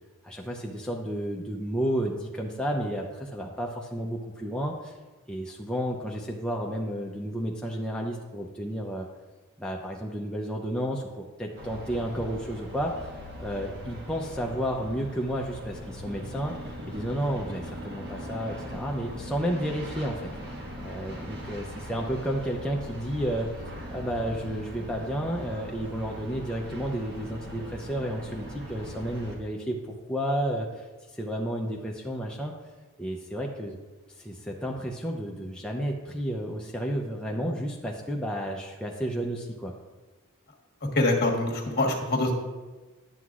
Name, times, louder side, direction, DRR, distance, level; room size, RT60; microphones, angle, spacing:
voice 1, 0.2-4.9 5.3-9.1 9.6-16.5 16.9-20.3 20.8-23.5 23.9-32.5 33.0-33.8 34.2-39.7, equal, 5° left, -1 dB, 0.5 m, -32 dB
sound 1, 11.5-29.3, equal, 50° right, 1.4 m, -40 dB
voice 2, 40.9-42.3, left 2 dB, 45° left, 1 dB, 1.3 m, -24 dB
11.0 x 7.7 x 2.4 m, 1.2 s
head